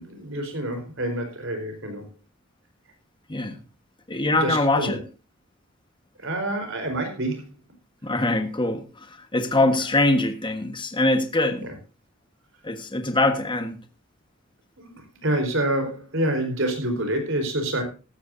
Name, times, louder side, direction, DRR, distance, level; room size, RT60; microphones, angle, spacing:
voice 1, 0.0-2.0 4.3-5.0 6.2-7.5 11.6-11.7 14.8-17.8, right 1 dB, 65° right, 4.2 m, -27 dB
voice 2, 4.1-5.0 8.0-9.1 9.3-11.7 12.6-13.8, left 2 dB, 25° left, 1.3 m, -23 dB
15.0 x 13.0 x 2.7 m
head